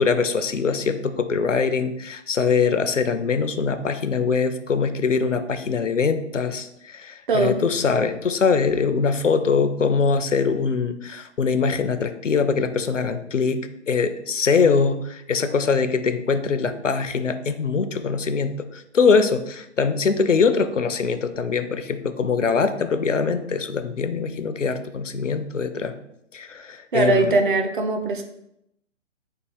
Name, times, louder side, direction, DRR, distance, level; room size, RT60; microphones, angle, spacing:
voice 1, 0.0-25.9 26.3-27.4, left 5 dB, 85° left, 9 dB, 0.6 m, -23 dB
voice 2, 26.9-28.2, right 2 dB, 45° right, 5 dB, 0.6 m, -20 dB
4.6 x 2.4 x 4.7 m, 0.78 s
figure-of-eight pair, 125°, 37 cm